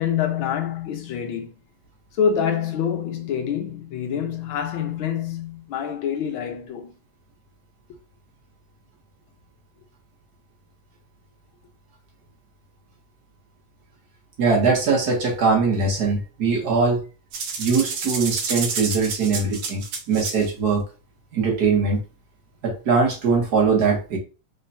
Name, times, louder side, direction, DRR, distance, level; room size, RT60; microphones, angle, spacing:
voice 1, 0.0-1.5 2.2-6.9, left 8 dB, 85° left, 1.6 m, -26 dB
voice 2, 14.4-17.0 17.6-20.8 21.3-22.0 22.6-24.2, right 4 dB, 55° right, 1.6 m, -21 dB
sound 1, 17.3-20.5, right 5 dB, 80° right, 1.7 m, -29 dB
4.3 x 3.8 x 2.7 m
omnidirectional pair, 2.2 m